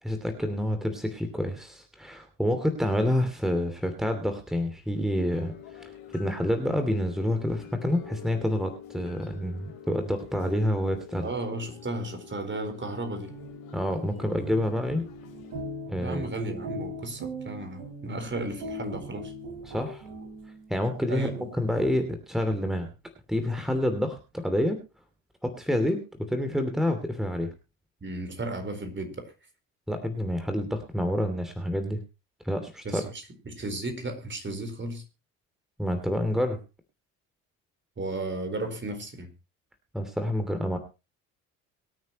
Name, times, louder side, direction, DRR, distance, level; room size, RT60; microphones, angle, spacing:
voice 1, 0.0-11.3 13.7-15.0 15.9-16.3 19.7-20.0 20.7-22.9 23.3-24.8 25.4-26.0 26.3-27.5 29.9-32.0 32.4-33.0 35.8-36.6 39.9-40.8, left 1 dB, ahead, 2.8 m, -28 dB
sound 1, 5.3-15.6, left 9 dB, 70° left, 4.5 m, -47 dB
voice 2, 11.2-13.3 16.0-19.3 21.1-21.6 28.0-29.3 32.8-35.0 38.0-39.3, right 2 dB, 25° right, 4.4 m, -34 dB
sound 2, 13.1-20.8, right 1 dB, 55° right, 3.6 m, -40 dB
24.0 x 9.4 x 3.0 m
hypercardioid pair, 55°, 41 cm